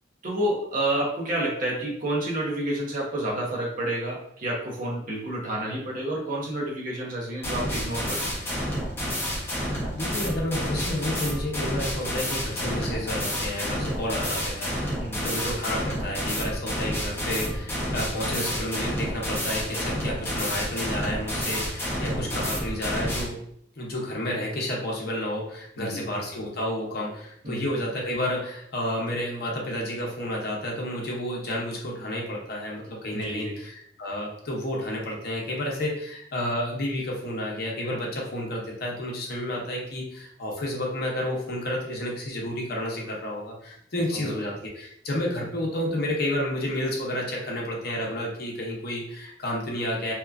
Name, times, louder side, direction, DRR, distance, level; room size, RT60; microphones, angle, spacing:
voice 1, 0.2-8.3 15.0-15.3 22.1-22.3 25.8-26.0 27.4-27.6 33.1-33.6 44.1-44.4, right 1 dB, 45° right, -3 dB, 0.8 m, -29 dB
sound 1, 7.4-23.3, equal, 15° left, 0.8 m, -30 dB
voice 2, 9.9-23.4 23.8-50.1, left 1 dB, 60° left, -2 dB, 0.8 m, -31 dB
2.9 x 2.3 x 2.3 m, 0.70 s
head